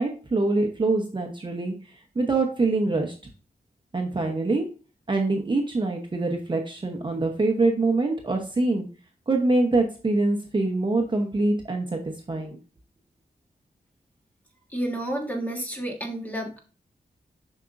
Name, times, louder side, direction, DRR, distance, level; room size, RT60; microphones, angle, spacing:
voice 1, 0.0-1.7 2.1-3.1 3.9-4.7 5.1-8.9 9.3-12.6, right 2 dB, 30° right, 2 dB, 0.9 m, -24 dB
voice 2, 14.7-16.6, right 1 dB, 10° left, 1 dB, 1.5 m, -30 dB
7.7 x 5.8 x 2.5 m, 0.36 s
wide cardioid pair, 175°, 16 cm